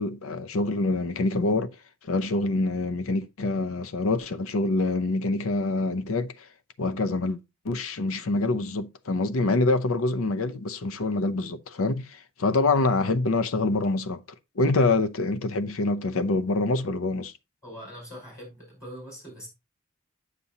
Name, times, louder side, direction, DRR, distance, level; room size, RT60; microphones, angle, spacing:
voice 1, 0.0-1.7 2.1-6.3 6.8-7.4 7.6-14.2 14.6-17.3, left 2 dB, 70° left, 0.6 m, -25 dB
voice 2, 17.6-19.5, equal, 15° left, 5.1 m, -43 dB
8.3 x 6.7 x 2.8 m
head